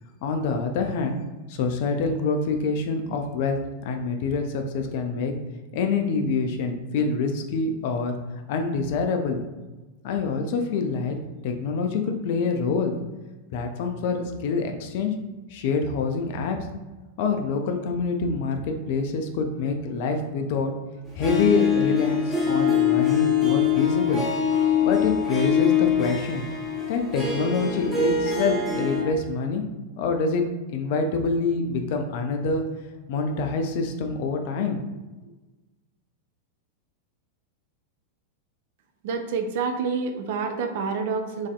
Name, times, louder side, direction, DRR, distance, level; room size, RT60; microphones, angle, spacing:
voice 1, 0.2-1.2 1.5-5.3 5.7-8.1 8.5-9.4 10.0-11.2 11.4-13.0 13.5-15.1 15.5-16.6 17.2-20.7 21.2-24.2 24.8-26.5 26.9-29.6 30.0-30.4 30.7-32.6 33.1-34.8, left 4 dB, 50° left, 5 dB, 0.4 m, -26 dB
Harp, 21.2-29.0, left 7 dB, ahead, 0.9 m, -23 dB
voice 2, 39.0-41.5, right 5 dB, 50° right, 6 dB, 0.3 m, -28 dB
3.2 x 2.5 x 2.3 m, 1.2 s
figure-of-eight pair, 90°, 0 cm